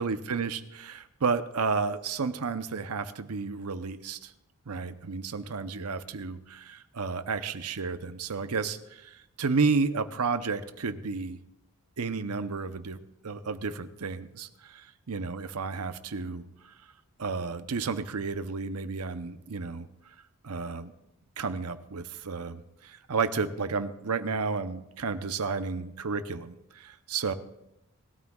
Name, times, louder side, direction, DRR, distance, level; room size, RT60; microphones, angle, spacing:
voice 1, 0.0-4.3 4.7-11.4 12.0-13.0 13.2-16.5 17.2-19.9 20.4-20.9 21.4-27.3, right 4 dB, 85° right, 10 dB, 0.8 m, -32 dB
20.5 x 13.0 x 2.4 m, 0.86 s
head